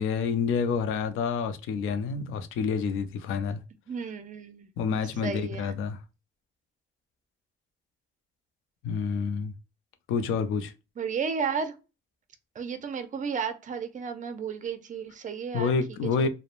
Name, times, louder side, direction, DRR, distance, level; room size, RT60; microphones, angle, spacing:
voice 1, 0.0-3.6 4.8-6.0 8.8-9.5 10.1-10.7 15.5-16.3, left 5 dB, 90° left, 0.5 m, -28 dB
voice 2, 3.9-4.7 5.2-5.8 11.0-11.8 12.5-16.3, right 6 dB, 40° right, 0.6 m, -33 dB
3.0 x 2.1 x 2.5 m
cardioid pair, 90°, 20 cm